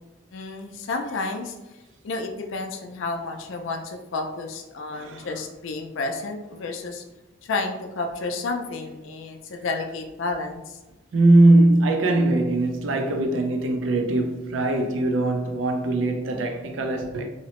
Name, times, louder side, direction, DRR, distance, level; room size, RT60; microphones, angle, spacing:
voice 1, 0.3-1.6 2.0-7.0 7.4-10.8, left 3 dB, 75° left, 0.4 m, -31 dB
voice 2, 4.9-5.3 11.1-17.3, right 2 dB, 75° right, 0.4 m, -21 dB
2.7 x 2.0 x 2.9 m
head